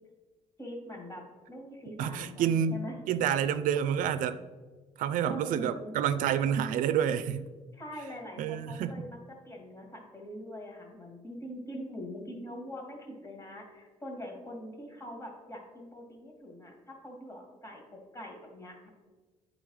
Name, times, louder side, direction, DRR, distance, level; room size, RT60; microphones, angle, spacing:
voice 1, 0.6-3.0 5.3-6.0 7.7-9.2 9.4-17.8 18.1-18.9, equal, 25° left, 2.2 m, -43 dB
voice 2, 2.0-2.8 3.1-4.4 5.0-7.5 8.4-9.1, right 8 dB, 80° right, 0.4 m, -28 dB
9.3 x 4.0 x 4.8 m
cardioid pair, 80°, 13 cm